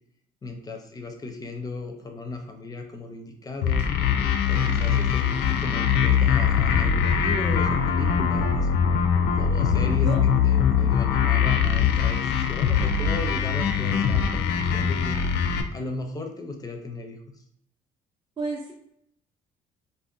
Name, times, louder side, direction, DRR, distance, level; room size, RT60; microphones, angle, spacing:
voice 1, 0.4-3.9 4.5-8.7 9.3-15.2 15.7-17.2, left 2 dB, 20° left, 4 dB, 0.5 m, -36 dB
sound 1, 3.6-15.6, left 7 dB, 80° left, 0.4 m, -22 dB
voice 2, 18.4-18.7, right 3 dB, 25° right, -1 dB, 0.5 m, -32 dB
2.5 x 2.1 x 3.7 m, 0.75 s
cardioid pair, 110°, 17 cm